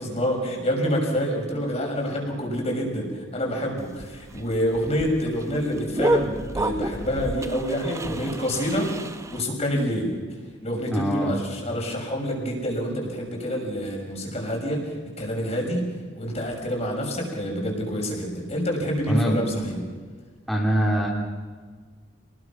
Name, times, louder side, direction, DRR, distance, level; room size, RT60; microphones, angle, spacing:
voice 1, 0.0-8.9 9.3-10.1 10.6-14.9 15.2-15.9 16.1-19.8, equal, 35° left, 0 dB, 6.2 m, -27 dB
sound 1, 3.8-9.4, right 1 dB, 15° right, 1.0 m, -30 dB
voice 2, 10.9-11.3 19.1-19.5 20.5-21.1, equal, ahead, -4 dB, 2.9 m, -23 dB
28.0 x 20.0 x 6.1 m, 1.5 s
head